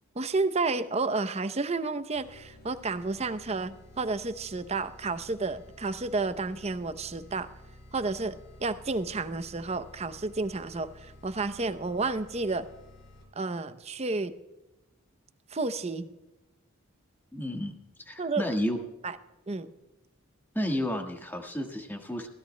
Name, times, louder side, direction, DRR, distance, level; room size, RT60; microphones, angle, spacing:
voice 1, 0.2-7.5 7.9-12.7 13.3-14.3 15.5-16.1 18.2-18.4 19.0-19.2 19.5-19.7, right 3 dB, 30° right, 12 dB, 0.6 m, -31 dB
sound 1, 2.1-13.5, left 1 dB, 55° left, 5.5 m, -52 dB
voice 2, 17.3-17.7 18.0-18.8 20.5-22.3, equal, 10° left, 3 dB, 1.5 m, -31 dB
22.5 x 16.5 x 2.2 m, 1.0 s
head